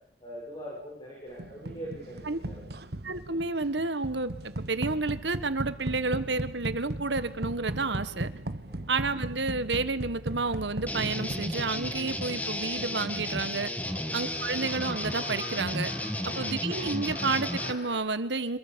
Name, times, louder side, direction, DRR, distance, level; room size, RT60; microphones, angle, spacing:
voice 1, 0.2-2.7 8.6-8.9 13.8-14.1 16.1-16.5, right 1 dB, 25° left, -3 dB, 7.5 m, -43 dB
sound 1, 1.4-12.3, right 1 dB, 60° right, 1.3 m, -37 dB
voice 2, 3.0-8.3 8.9-13.7 14.1-15.9 16.3-18.6, right 3 dB, 80° right, 12 dB, 1.7 m, -30 dB
sound 2, 10.9-17.7, left 1 dB, 10° left, 1.6 m, -33 dB
sound 3, 13.7-18.0, left 1 dB, 65° left, 6.5 m, -44 dB
26.5 x 22.5 x 7.1 m, 0.72 s
head